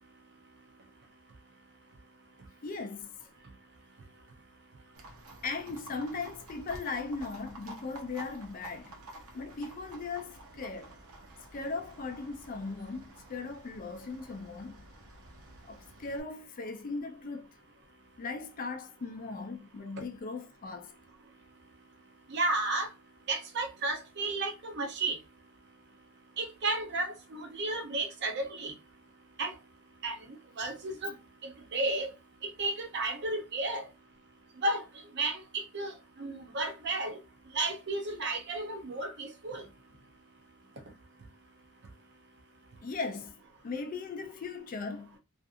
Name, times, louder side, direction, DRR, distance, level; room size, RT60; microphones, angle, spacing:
voice 1, 2.6-3.1 5.4-9.0 9.3-10.9 11.5-14.8 15.6-17.5 18.2-20.9 39.5-39.6 42.8-43.3 43.6-45.2, left 4 dB, 40° left, 0.4 m, -38 dB
Livestock farm animals working animals, 4.9-16.2, right 2 dB, 85° right, 0.8 m, -51 dB
voice 2, 22.3-22.9 23.3-25.2 26.4-28.7 29.4-29.5 30.0-30.2 30.6-31.1 31.4-32.1 32.4-33.9 34.6-34.8 35.1-37.2 37.5-39.7, right 2 dB, 50° right, 0.6 m, -33 dB
2.6 x 2.5 x 2.4 m
head